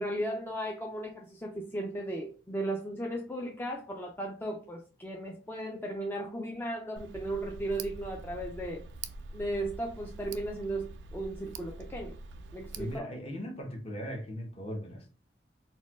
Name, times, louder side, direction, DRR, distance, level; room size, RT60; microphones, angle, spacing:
voice 1, 0.0-8.8 9.3-12.1 12.5-13.1, right 1 dB, 10° left, 0.3 m, -36 dB
Tick, 7.0-13.0, right 4 dB, 85° right, 0.3 m, -44 dB
voice 2, 12.8-15.1, equal, 35° left, 0.7 m, -38 dB
4.2 x 2.2 x 2.2 m
head